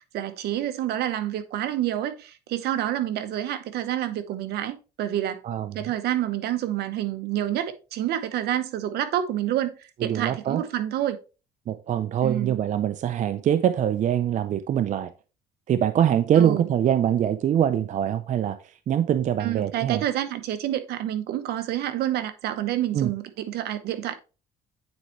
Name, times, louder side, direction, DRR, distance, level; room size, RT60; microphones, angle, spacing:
voice 1, 0.0-5.4 5.7-9.7 10.0-11.2 12.2-12.5 16.4-16.7 19.4-24.1, right 12 dB, 75° right, 0.9 m, -28 dB
voice 2, 5.4-5.8 10.0-10.6 11.7-15.1 15.7-18.6 18.9-20.0 22.9-23.1, right 10 dB, 45° right, 0.5 m, -23 dB
8.8 x 4.4 x 3.0 m
cardioid pair, 110°, 17 cm